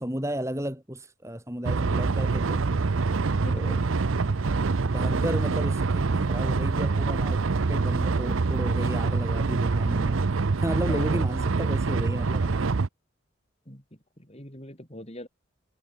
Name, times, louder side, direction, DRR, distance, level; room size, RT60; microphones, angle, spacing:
voice 1, 0.0-2.6 3.5-3.8 4.9-7.4 7.7-10.2 10.6-12.6, equal, 15° right, 4.2 m, -33 dB
sound 1, 1.6-12.9, right 4 dB, 80° right, 0.7 m, -25 dB
voice 2, 3.4-4.0 10.8-11.3 13.7-13.8 14.3-15.3, left 1 dB, 30° left, 7.4 m, -40 dB
head